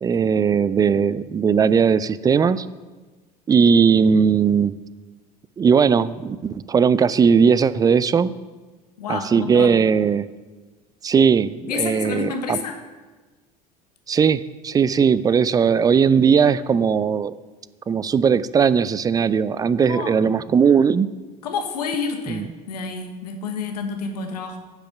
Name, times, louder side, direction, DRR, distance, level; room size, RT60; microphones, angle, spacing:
voice 1, 0.0-2.7 3.5-4.7 5.6-8.3 9.1-10.3 11.0-12.6 14.1-17.3 17.9-21.1 22.3-22.4, right 6 dB, 20° right, 17 dB, 0.3 m, -18 dB
voice 2, 9.0-9.8 11.7-12.8 19.8-20.1 21.4-24.6, left 5 dB, 70° left, 5 dB, 1.1 m, -29 dB
10.0 x 5.6 x 5.9 m, 1.3 s
figure-of-eight pair, 70°, 21 cm